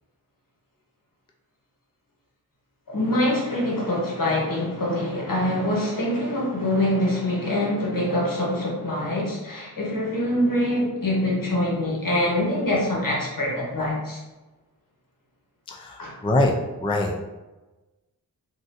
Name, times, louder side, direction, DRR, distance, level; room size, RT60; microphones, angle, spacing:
voice 1, 2.9-14.2 16.0-16.1, left 1 dB, 65° left, -4 dB, 1.1 m, -24 dB
voice 2, 15.7-17.2, left 2 dB, 15° left, 1 dB, 0.3 m, -24 dB
3.8 x 2.5 x 2.5 m, 1.1 s
wide cardioid pair, 60°, 36 cm